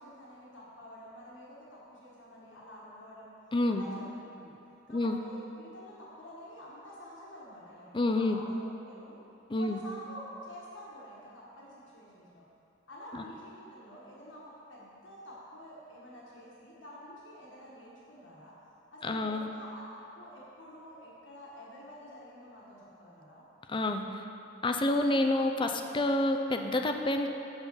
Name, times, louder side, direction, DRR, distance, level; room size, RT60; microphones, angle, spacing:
voice 1, 0.0-3.3 3.7-4.1 4.3-4.5 4.9-9.2 9.6-12.4 12.9-18.5 18.9-23.4, equal, 90° left, -6 dB, 1.7 m, -48 dB
voice 2, 3.5-3.9 4.9-5.2 7.9-8.4 9.5-9.8 13.1-13.2 19.0-19.5 23.7-24.2 24.6-27.3, left 2 dB, 25° left, 4 dB, 0.5 m, -28 dB
8.0 x 5.7 x 7.0 m, 2.8 s
head